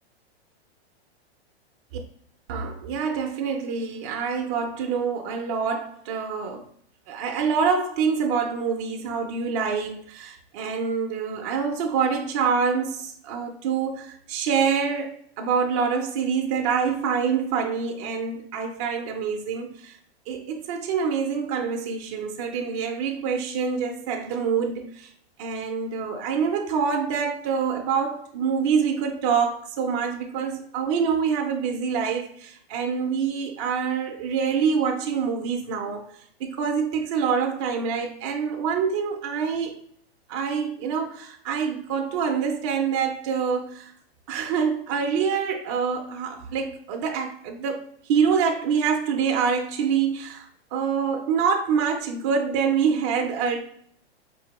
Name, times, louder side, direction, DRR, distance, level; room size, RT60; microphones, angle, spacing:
voice 1, 2.5-6.7 7.1-19.9 20.3-25.1 25.4-39.8 40.3-43.9 44.3-53.6, right 6 dB, 30° right, 0.4 m, -26 dB
4.3 x 2.6 x 2.9 m
hypercardioid pair, 150°, 32 cm